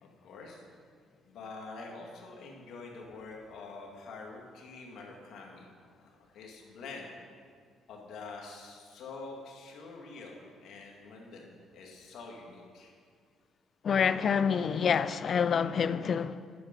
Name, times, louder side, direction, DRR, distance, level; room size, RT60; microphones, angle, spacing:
voice 1, 0.0-0.6 1.2-5.7 6.0-7.1 7.9-12.9, left 3 dB, 70° left, 2.0 m, -46 dB
voice 2, 13.8-16.6, left 7 dB, 50° left, 0.4 m, -27 dB
11.0 x 7.1 x 5.2 m
cardioid pair, 80°, 0 cm